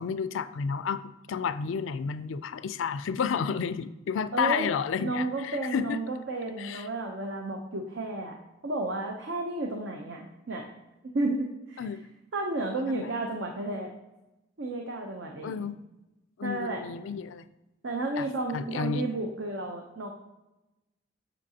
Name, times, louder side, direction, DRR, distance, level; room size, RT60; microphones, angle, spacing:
voice 1, 0.0-6.0 6.6-6.9 11.8-12.0 12.9-13.1 15.4-15.8 16.4-17.5 18.2-18.3 18.5-19.0, left 6 dB, 75° left, 14 dB, 0.3 m, -31 dB
voice 2, 4.3-4.7 5.0-8.3 8.6-10.7 11.0-11.8 12.3-13.9 14.6-15.6 16.4-16.9 17.8-20.1, right 2 dB, 65° right, 1 dB, 0.7 m, -32 dB
7.4 x 6.5 x 2.8 m, 1.0 s
head